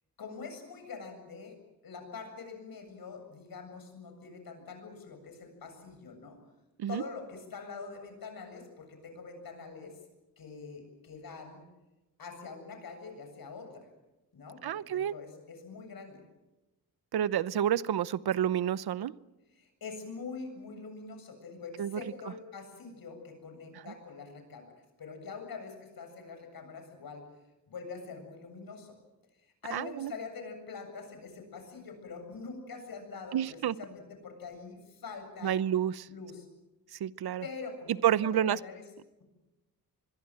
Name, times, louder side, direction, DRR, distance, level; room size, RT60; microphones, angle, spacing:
voice 1, 0.2-1.5 1.8-6.4 6.9-9.9 10.4-11.6 12.2-13.9 14.3-16.2 19.5-24.7 25.0-27.2 27.7-29.0 29.6-35.5 36.1-36.5 37.4-37.9 38.3-38.8, left 4 dB, 70° left, 6 dB, 7.7 m, -44 dB
voice 2, 14.6-15.1 17.1-19.1 21.8-22.0 23.9-24.0 29.7-30.1 33.3-33.8 35.4-36.1 36.9-37.4 38.0-38.6, right 10 dB, 80° right, 17 dB, 0.9 m, -29 dB
25.5 x 22.0 x 7.7 m, 1.0 s
wide cardioid pair, 115°, 37 cm